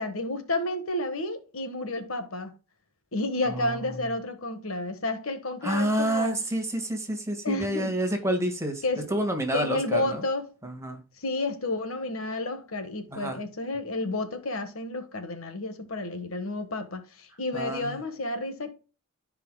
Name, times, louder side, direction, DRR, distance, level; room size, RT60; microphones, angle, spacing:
voice 1, 0.0-2.5 3.1-6.4 7.4-8.0 8.8-9.1 9.5-10.5 11.2-18.7, left 2 dB, 70° left, 1.4 m, -31 dB
voice 2, 5.6-8.8 9.1-10.2 10.6-11.0 13.1-13.4 17.5-18.0, right 1 dB, 15° right, 1.7 m, -28 dB
14.0 x 4.9 x 2.2 m
head